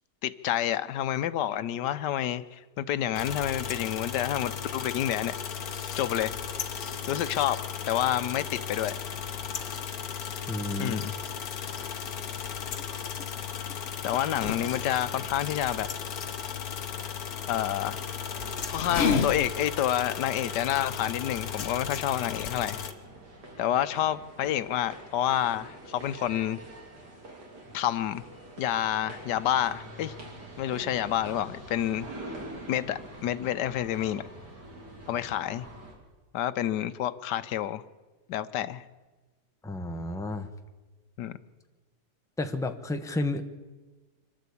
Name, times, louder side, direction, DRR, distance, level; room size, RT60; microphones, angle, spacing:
voice 1, 0.2-5.4 6.0-6.3 7.1-9.0 10.8-11.1 14.0-15.9 17.5-18.0 18.7-22.8 23.6-26.6 27.7-28.2 28.6-30.1 30.6-32.1 32.7-34.2 35.1-35.7 36.3-37.8 38.3-38.8 41.2-41.3, left 11 dB, 90° left, 13 dB, 1.4 m, -29 dB
sound 1, 3.1-22.9, left 7 dB, 65° left, 1.6 m, -36 dB
sound 2, 8.5-19.5, left 5 dB, 45° left, 1.2 m, -37 dB
voice 2, 10.5-11.0 39.6-40.5 42.4-43.4, left 2 dB, ahead, 6 dB, 0.9 m, -31 dB
sound 3, 17.9-35.9, right 1 dB, 85° right, 3.8 m, -46 dB
25.5 x 12.0 x 8.4 m, 1.2 s
omnidirectional pair, 1.8 m